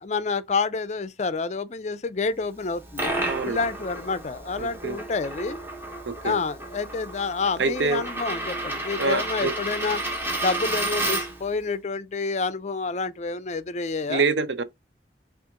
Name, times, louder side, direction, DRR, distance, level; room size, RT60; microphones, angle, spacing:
voice 1, 0.0-3.1 3.4-5.6 6.2-10.0 10.3-14.2, left 4 dB, 40° left, 0.4 m, -28 dB
Coin (dropping), 2.6-11.5, right 2 dB, 10° right, 1.0 m, -31 dB
voice 2, 3.3-3.6 4.6-5.0 6.1-6.4 7.6-8.0 9.0-9.5 14.1-14.6, right 4 dB, 80° right, 0.6 m, -25 dB
5.7 x 2.5 x 3.6 m
head